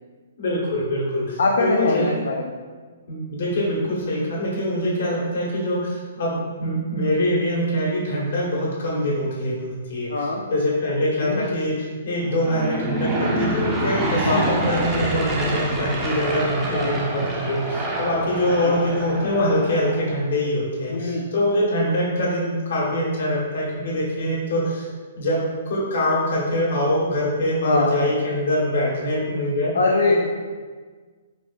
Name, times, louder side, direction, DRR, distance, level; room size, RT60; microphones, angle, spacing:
voice 1, 0.4-2.1 3.1-9.6 9.9-10.1 10.5-24.9 25.2-29.7 30.1-30.2, left 1 dB, 65° left, -5 dB, 1.1 m, -24 dB
voice 2, 1.4-2.5 10.1-10.4 11.2-11.4 14.3-14.6 16.7-16.9 18.6-18.8 20.9-21.3 27.6-28.0 29.7-30.2, left 3 dB, 85° left, -1 dB, 0.3 m, -22 dB
Aircraft / Engine, 12.2-20.2, right 1 dB, 15° right, 0.4 m, -26 dB
4.1 x 2.3 x 2.4 m, 1.5 s
hypercardioid pair, 160°, 0 cm